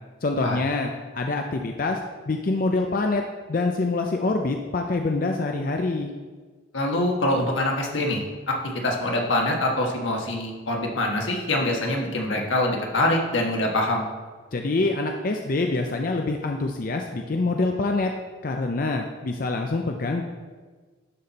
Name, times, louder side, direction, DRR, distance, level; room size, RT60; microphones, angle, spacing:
voice 1, 0.2-2.0 2.3-3.2 3.5-6.1 14.5-18.1 18.4-20.2, left 3 dB, 45° left, 3 dB, 0.5 m, -25 dB
voice 2, 6.7-8.2 8.5-8.6 8.8-14.1, left 1 dB, 85° left, 0 dB, 1.4 m, -24 dB
11.5 x 4.2 x 4.1 m, 1.4 s
head